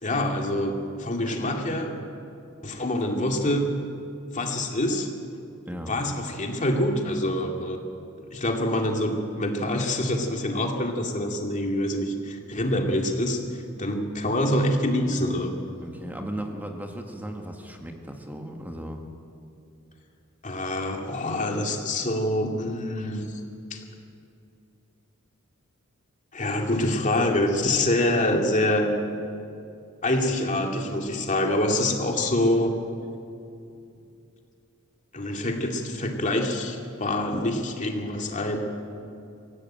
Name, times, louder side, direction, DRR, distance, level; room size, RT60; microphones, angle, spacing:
voice 1, 0.0-1.9 2.6-3.7 4.3-5.1 5.9-7.8 8.3-13.4 13.8-15.6 20.4-23.4 23.7-23.8 26.3-28.9 30.0-32.8 35.1-38.6, left 1 dB, 35° left, 2 dB, 2.5 m, -25 dB
voice 2, 15.8-19.0, right 1 dB, 10° right, 3 dB, 1.6 m, -36 dB
24.0 x 16.0 x 9.1 m, 2.6 s
head